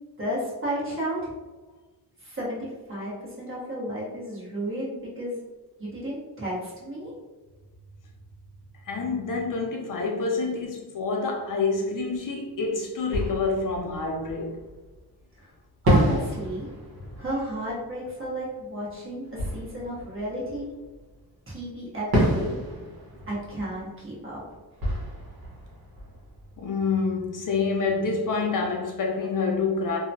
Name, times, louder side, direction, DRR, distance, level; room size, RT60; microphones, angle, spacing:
voice 1, 0.2-1.3 2.2-5.4 5.8-7.1 15.4-15.5 15.8-16.7 17.2-20.7 21.5-22.5 23.3-24.4, right 1 dB, 30° right, -6 dB, 1.1 m, -33 dB
voice 2, 8.8-14.6 26.6-30.0, left 4 dB, 50° left, 0 dB, 0.5 m, -27 dB
Fireworks, 12.5-12.6 13.1-15.0 15.8-21.2 22.1-26.9, equal, 60° right, 1.1 m, -30 dB
2.8 x 2.2 x 2.7 m, 1.2 s
cardioid pair, 125°, 41 cm